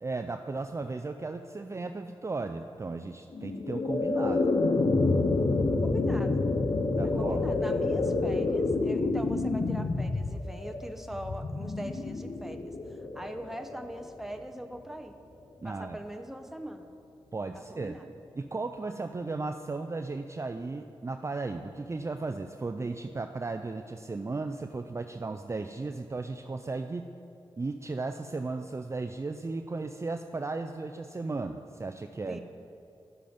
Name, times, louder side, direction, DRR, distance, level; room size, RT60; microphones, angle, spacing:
voice 1, 0.0-4.5 7.0-7.4 15.6-16.0 17.3-18.0 18.4-27.1 27.6-32.4, right 3 dB, 30° right, 7 dB, 0.4 m, -35 dB
sound 1, 3.3-14.5, left 3 dB, 55° left, 0.7 m, -28 dB
voice 2, 5.8-6.5 7.2-15.2 15.6-16.9 17.5-18.0 32.3-32.4, right 1 dB, 5° right, 5 dB, 0.8 m, -41 dB
11.0 x 7.5 x 5.1 m, 2.5 s
cardioid pair, 55°, 10 cm